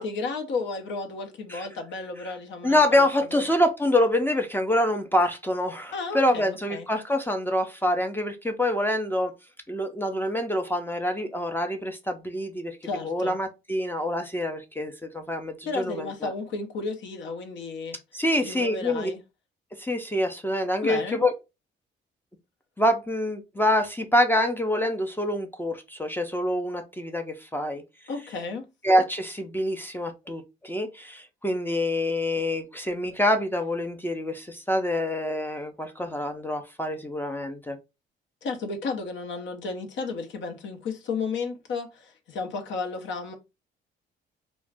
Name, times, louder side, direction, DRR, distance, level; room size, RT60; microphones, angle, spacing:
voice 1, 0.0-3.4 5.9-6.9 12.8-13.4 15.7-18.0 18.4-19.2 20.8-21.2 28.1-28.6 38.4-43.3, left 4 dB, 70° left, 0.7 m, -33 dB
voice 2, 2.6-9.3 9.7-12.8 13.0-16.3 18.1-19.1 19.8-21.3 22.8-27.8 28.8-37.8, left 1 dB, 10° left, 0.4 m, -26 dB
2.4 x 2.1 x 3.2 m
cardioid pair, 90°, 20 cm